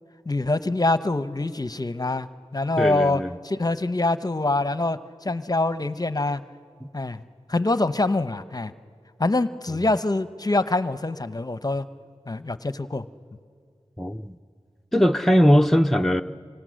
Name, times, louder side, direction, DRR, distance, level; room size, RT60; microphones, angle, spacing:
voice 1, 0.3-6.4 6.9-7.2 7.5-8.7 9.2-11.9 12.3-13.1, left 2 dB, 35° left, 12 dB, 0.8 m, -25 dB
voice 2, 2.8-3.3 6.8-6.9 14.0-14.4 14.9-16.2, equal, ahead, 6 dB, 0.6 m, -20 dB
26.0 x 25.5 x 6.4 m, 2.1 s
cardioid pair, 40°, 11 cm